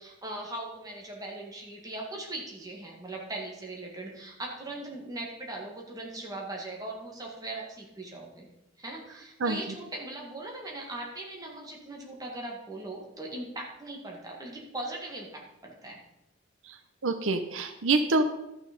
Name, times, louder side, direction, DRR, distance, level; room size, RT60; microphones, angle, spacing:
voice 1, 0.0-8.5 8.8-16.0, right 2 dB, 20° right, -1 dB, 1.9 m, -39 dB
voice 2, 17.0-18.2, right 3 dB, 85° right, 9 dB, 0.7 m, -26 dB
12.5 x 6.3 x 5.3 m, 0.90 s
head